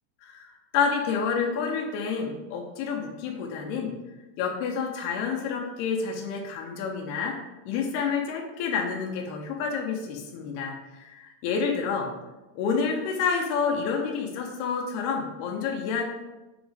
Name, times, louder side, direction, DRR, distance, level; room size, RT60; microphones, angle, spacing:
voice 1, 0.2-3.9 4.4-7.3 7.7-12.1 12.6-16.1, left 5 dB, 80° left, 1 dB, 2.8 m, -29 dB
6.9 x 4.3 x 5.1 m, 1.1 s
omnidirectional pair, 4.8 m